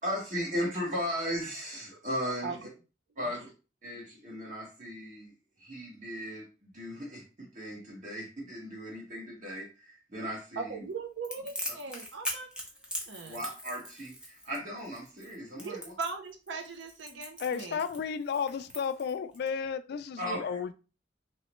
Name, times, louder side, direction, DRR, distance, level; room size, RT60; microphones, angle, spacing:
voice 1, 0.0-2.5 3.2-3.5 3.8-5.3 5.6-7.2 7.5-10.8 13.2-15.9 20.2-20.5, equal, 45° right, 1.6 m, -36 dB
voice 2, 10.6-12.5 13.1-13.4 15.6-17.8, right 4 dB, 80° right, 0.5 m, -39 dB
Crackle, 11.2-19.5, equal, 5° right, 0.7 m, -41 dB
voice 3, 17.4-20.7, left 6 dB, 60° left, 0.3 m, -33 dB
3.1 x 3.0 x 3.0 m
head